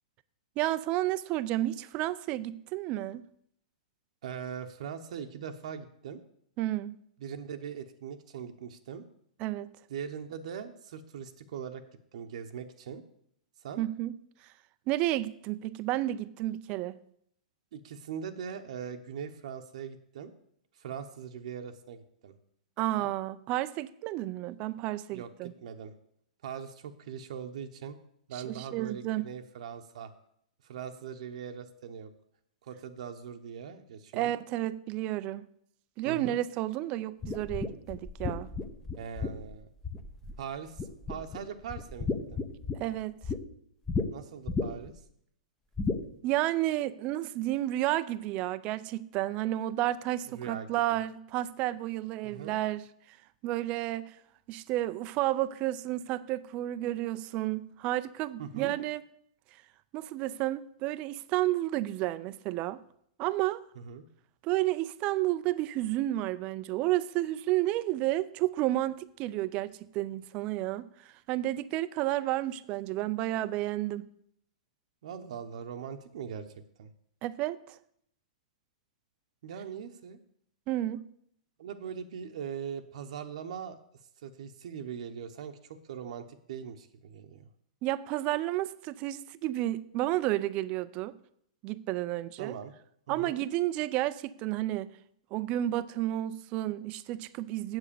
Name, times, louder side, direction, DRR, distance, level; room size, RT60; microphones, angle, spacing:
voice 1, 0.6-3.2 6.6-7.0 9.4-9.7 13.8-14.1 14.9-16.9 22.8-25.5 28.3-29.3 34.1-35.5 36.0-38.5 42.7-43.2 46.2-52.9 53.4-54.1 54.5-59.0 59.9-62.8 63.2-63.6 64.4-70.9 71.3-74.1 77.2-77.6 80.7-81.0 87.8-91.1 91.6-92.6 93.1-94.9 95.3-97.8, right 15 dB, 25° right, 16 dB, 0.4 m, -31 dB
voice 2, 4.2-6.2 7.2-9.0 9.9-11.8 12.1-13.0 13.6-13.8 17.7-20.3 20.8-22.4 23.0-23.1 25.1-25.3 25.6-25.9 26.4-28.0 28.3-30.1 30.6-32.1 32.6-34.4 36.0-36.4 39.0-39.7 40.4-42.4 44.1-45.0 50.3-50.7 52.2-52.6 58.4-58.7 63.8-64.0 75.0-76.5 76.8-76.9 79.4-80.2 81.6-83.8 84.2-87.5 92.4-92.7 93.1-93.3, right 7 dB, 60° right, 6 dB, 0.9 m, -41 dB
sound 1, 37.2-40.5 40.8-41.4 41.7-43.4 43.9-44.1 44.5-45.0 45.8-46.0, left 4 dB, 10° left, 0.6 m, -33 dB
7.9 x 7.6 x 6.8 m, 0.69 s
hypercardioid pair, 165°, 4 cm